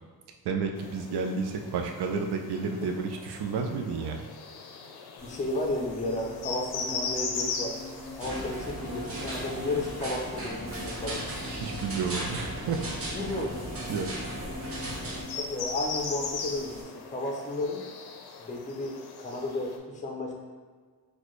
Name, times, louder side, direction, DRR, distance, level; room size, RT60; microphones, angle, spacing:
voice 1, 0.4-4.2 11.5-12.9 13.9-14.1, right 5 dB, 85° right, 4 dB, 0.5 m, -31 dB
sound 1, 0.8-19.8, left 5 dB, 80° left, 0.5 m, -40 dB
voice 2, 5.2-7.8 8.2-11.2 13.1-13.6 15.4-17.8 18.4-20.4, left 2 dB, 20° left, 0 dB, 0.4 m, -33 dB
sound 2, 5.2-16.8, left 1 dB, 10° right, 1.0 m, -45 dB
sound 3, 8.2-15.2, right 1 dB, 35° right, 0.7 m, -36 dB
4.1 x 2.2 x 3.0 m, 1.5 s
wide cardioid pair, 170°, 38 cm